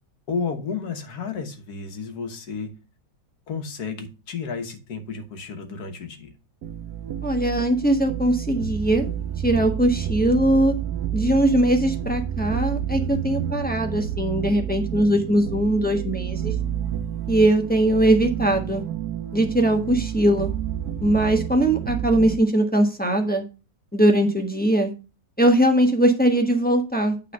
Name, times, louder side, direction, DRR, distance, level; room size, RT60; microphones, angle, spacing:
voice 1, 0.3-2.7 3.5-6.3, left 5 dB, 70° left, 7 dB, 1.8 m, -32 dB
sound 1, 6.6-22.4, right 9 dB, 70° right, 1.3 m, -30 dB
voice 2, 7.2-9.1 9.4-10.7 11.1-16.5 17.3-18.8 19.3-20.5 21.0-23.4 23.9-24.9 25.4-27.3, right 1 dB, 5° left, 2 dB, 1.0 m, -20 dB
8.8 x 3.8 x 6.3 m, 0.31 s
omnidirectional pair, 1.8 m